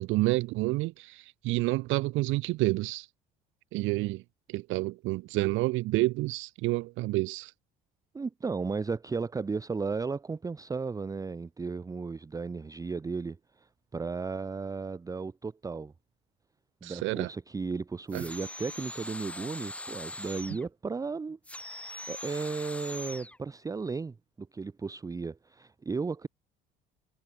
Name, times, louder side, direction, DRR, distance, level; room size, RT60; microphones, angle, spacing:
voice 1, 0.0-3.1 3.7-4.2 4.5-7.5 16.8-17.3 18.1-18.2, right 20 dB, 75° right, 0.7 m, -29 dB
voice 2, 8.1-15.9 16.8-21.4 22.1-26.3, right 4 dB, 15° right, 0.5 m, -35 dB
sound 1, 18.1-20.7 21.4-23.4, left 1 dB, 5° left, 1.6 m, -41 dB
supercardioid pair, 80°, 20 cm